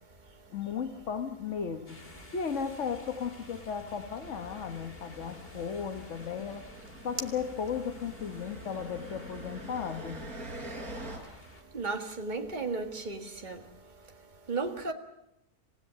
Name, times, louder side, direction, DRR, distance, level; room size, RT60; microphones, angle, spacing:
voice 1, 0.5-2.0 2.3-6.6 7.0-10.2, left 6 dB, 55° left, 1.6 m, -35 dB
sound 1, 1.9-11.6, left 2 dB, 40° left, 3.1 m, -52 dB
sound 2, 4.2-11.2, right 1 dB, 75° right, 4.6 m, -45 dB
voice 2, 11.7-13.6 14.5-14.9, right 3 dB, 30° right, 2.0 m, -34 dB
28.0 x 16.5 x 7.7 m
omnidirectional pair, 1.6 m